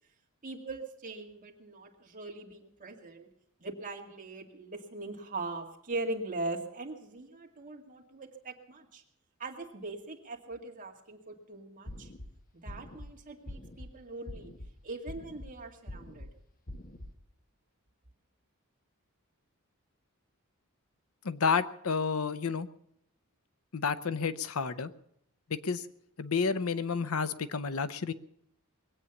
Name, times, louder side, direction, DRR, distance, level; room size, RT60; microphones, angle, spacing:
voice 1, 0.4-3.3 3.6-9.0 9.4-12.1 12.6-14.5 14.8-16.3, right 2 dB, 40° right, 2 dB, 2.2 m, -41 dB
sound 1, 11.9-12.3 12.7-13.1 13.5-13.9 14.3-14.7 15.1-15.5 15.9-16.3 16.7-17.1, left 1 dB, 40° left, 1.4 m, -44 dB
voice 2, 21.2-22.7 23.7-24.9 25.5-25.8 26.2-28.1, left 5 dB, 75° left, 14 dB, 0.7 m, -30 dB
21.0 x 8.5 x 7.1 m, 0.73 s
head